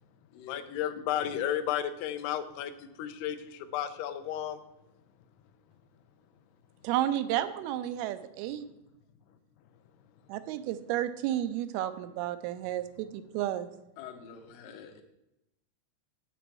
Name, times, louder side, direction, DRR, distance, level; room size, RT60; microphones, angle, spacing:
voice 1, 0.5-4.6, left 10 dB, 85° left, 10 dB, 2.8 m, -33 dB
voice 2, 6.8-8.7 10.3-13.7, right 12 dB, 85° right, 12 dB, 2.4 m, -32 dB
voice 3, 14.0-15.0, left 8 dB, 70° left, 5 dB, 2.2 m, -46 dB
9.1 x 8.3 x 4.6 m, 0.89 s
omnidirectional pair, 4.7 m